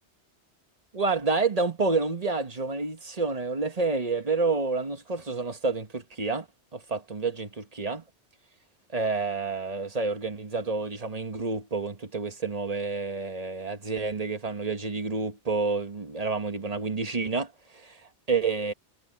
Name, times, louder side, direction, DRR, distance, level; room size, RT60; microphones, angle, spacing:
voice 1, 0.9-6.5 6.7-8.0 8.9-18.0 18.3-18.7, right 4 dB, 35° right, 1.3 m, -29 dB
omnidirectional pair, 1.2 m